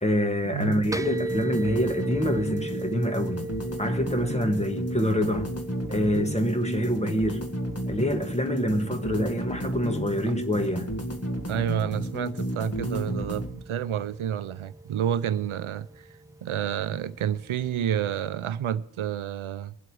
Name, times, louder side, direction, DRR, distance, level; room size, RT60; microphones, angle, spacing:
voice 1, 0.0-3.4 3.8-5.5 5.9-7.4 7.9-10.9, equal, 15° left, 1.4 m, -26 dB
voice 2, 0.5-0.9 10.3-10.4 11.5-16.1 16.4-19.7, right 10 dB, 75° right, 0.6 m, -29 dB
sound 1, 0.6-13.5, equal, 30° left, 1.8 m, -32 dB
sound 2, 0.9-18.3, right 2 dB, 5° right, 0.5 m, -39 dB
20.5 x 7.7 x 4.7 m
wide cardioid pair, 90°, 49 cm